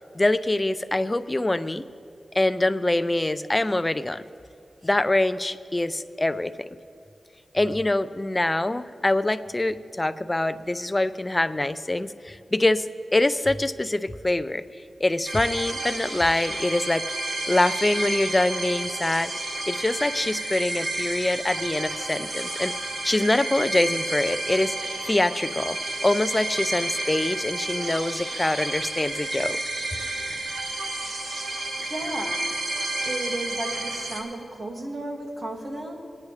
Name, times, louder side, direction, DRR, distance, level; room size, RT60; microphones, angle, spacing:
voice 1, 0.1-1.8 2.3-4.2 4.8-6.7 7.5-14.7 15.0-17.1 17.5-22.7 23.0-24.8 25.1-29.6, left 2 dB, 20° left, 12 dB, 0.4 m, -24 dB
sound 1, 15.3-34.2, right 2 dB, 85° right, 1.7 m, -31 dB
voice 2, 31.8-32.4 33.1-35.9, right 1 dB, 45° right, -1 dB, 2.0 m, -33 dB
21.5 x 9.7 x 3.3 m, 2.5 s
wide cardioid pair, 90°, 0 cm